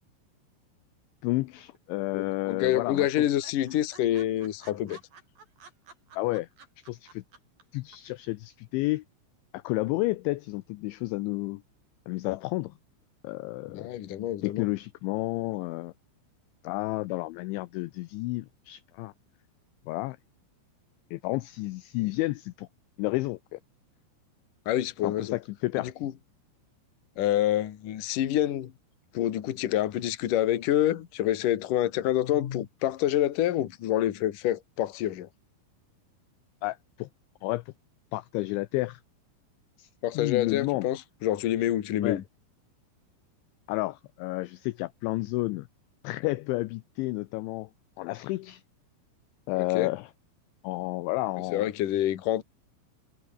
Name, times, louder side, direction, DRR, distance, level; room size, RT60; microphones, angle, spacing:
voice 1, 1.2-3.1 6.2-6.5 6.8-7.2 7.7-9.0 9.5-11.6 12.1-12.7 13.2-13.9 14.4-15.9 16.6-19.1 19.9-20.2 21.1-22.7 23.0-23.6 25.0-25.9 36.6-37.1 37.4-37.6 38.1-39.0 39.8-39.9 40.1-40.9 42.0-42.2 43.7-45.7 46.0-47.7 48.0-48.6 49.5-50.1 50.6-51.6, left 20 dB, 80° left, 2.7 m, -31 dB
sound 1, 1.6-2.2 2.5-2.6 2.9-3.0 3.3-7.6 7.9-8.0, right 4 dB, 45° right, 7.8 m, -52 dB
voice 2, 2.1-5.0 13.7-14.7 22.0-22.1 24.7-25.3 25.7-26.1 27.2-28.7 29.1-35.3 40.0-42.2 49.7-49.9 51.5-52.4, left 12 dB, 55° left, 2.5 m, -27 dB
omnidirectional pair, 6.0 m